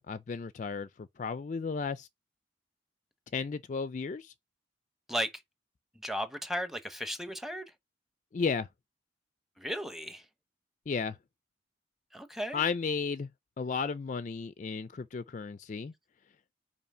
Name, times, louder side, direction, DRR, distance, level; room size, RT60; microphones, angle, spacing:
voice 1, 0.0-2.1 3.3-4.3 8.3-8.7 10.9-11.2 12.5-13.3 13.6-15.9, left 5 dB, 40° left, 0.3 m, -34 dB
voice 2, 6.0-7.7 9.6-10.2 12.1-12.6, equal, ahead, 0.8 m, -35 dB
5.6 x 4.6 x 5.5 m
head